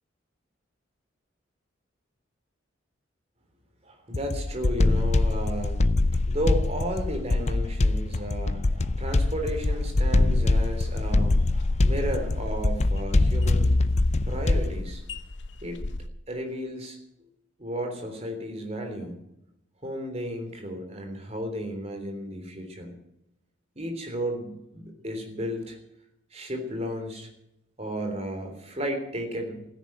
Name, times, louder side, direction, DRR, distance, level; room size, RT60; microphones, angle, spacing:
voice 1, 3.8-5.9 6.3-13.7 14.2-15.0 15.6-15.8 16.3-17.0 17.6-19.2 19.8-23.0 23.8-25.8 26.3-27.3 27.8-29.7, equal, 30° right, 4 dB, 3.4 m, -33 dB
sound 1, 4.1-14.8, left 2 dB, 35° left, 0.5 m, -24 dB
sound 2, 9.5-16.1, left 2 dB, 65° left, 0.9 m, -32 dB
16.0 x 10.0 x 8.9 m, 0.82 s
head